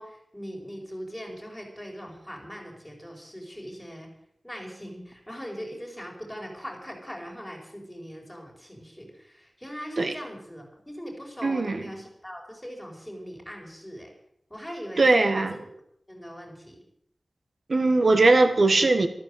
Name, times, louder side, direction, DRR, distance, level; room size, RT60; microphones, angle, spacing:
voice 1, 0.0-4.1 4.4-14.1 14.5-15.6 16.1-16.8 18.2-18.3, equal, ahead, 0 dB, 5.1 m, -40 dB
voice 2, 11.4-11.8 15.0-15.5 17.7-19.1, right 3 dB, 60° right, 9 dB, 1.5 m, -20 dB
14.0 x 13.5 x 7.8 m, 0.75 s
wide cardioid pair, 90°, 0 cm